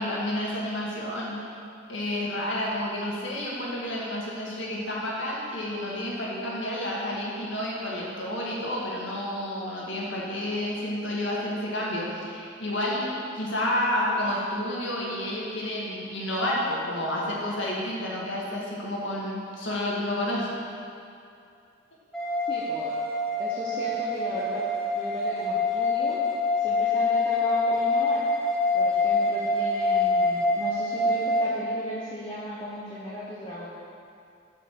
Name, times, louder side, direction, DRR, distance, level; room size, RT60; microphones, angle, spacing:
voice 1, 0.0-1.4 1.9-20.5, left 1 dB, 75° left, -4 dB, 1.9 m, -30 dB
sound 1, 22.1-31.5, left 2 dB, 5° left, 0.8 m, -25 dB
voice 2, 22.5-22.9 23.4-24.6 24.9-26.2 26.6-28.2 28.7-33.7, equal, 25° left, -8 dB, 1.1 m, -36 dB
7.3 x 5.9 x 6.1 m, 2.5 s
head